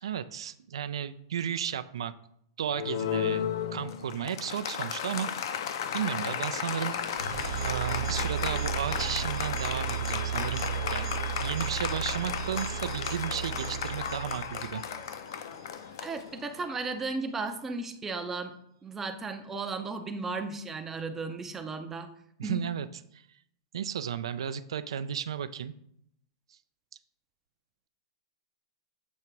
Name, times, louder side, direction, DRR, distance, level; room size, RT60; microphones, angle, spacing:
voice 1, 0.0-2.1 2.6-7.2 7.6-11.1 11.4-14.8 22.4-22.9 23.1-23.2 23.7-25.7 26.5-26.6, right 9 dB, 90° right, 12 dB, 0.3 m, -34 dB
Applause, 2.7-16.8, left 8 dB, 55° left, 0.5 m, -34 dB
sound 1, 5.0-15.8, right 9 dB, 70° right, 0.8 m, -36 dB
voice 2, 16.0-18.5 18.8-22.1 22.4-22.7, right 3 dB, 10° right, 7 dB, 0.4 m, -35 dB
7.1 x 2.9 x 4.5 m, 0.72 s
supercardioid pair, 165°, 3 cm